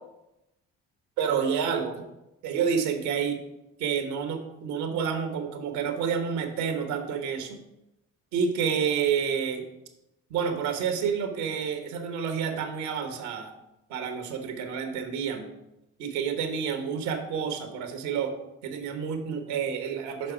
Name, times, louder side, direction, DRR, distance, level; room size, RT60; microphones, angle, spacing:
voice 1, 1.2-2.1 2.4-3.4 3.8-7.6 8.3-9.6 10.3-13.5 13.9-15.5 16.0-18.3 18.6-20.3, right 7 dB, 80° right, 6 dB, 1.2 m, -29 dB
6.5 x 4.7 x 4.8 m, 0.91 s
hypercardioid pair, 50°, 36 cm